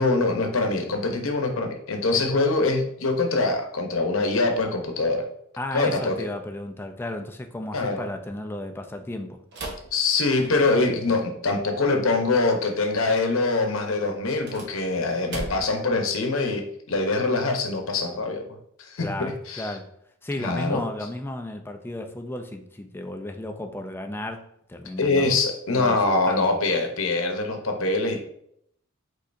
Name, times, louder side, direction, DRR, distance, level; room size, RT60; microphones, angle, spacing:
voice 1, 0.0-5.3 5.7-6.2 7.7-8.1 9.9-18.5 18.8-19.8 20.4-20.8 25.0-28.2, left 3 dB, 75° left, 4 dB, 0.8 m, -24 dB
voice 2, 5.6-9.4 19.0-19.9 20.2-25.4 25.7-26.5, left 1 dB, 10° left, 5 dB, 0.4 m, -34 dB
sound 1, 9.5-10.9 14.2-15.9, right 2 dB, 55° right, 0.9 m, -38 dB
5.3 x 3.8 x 2.6 m, 0.71 s
head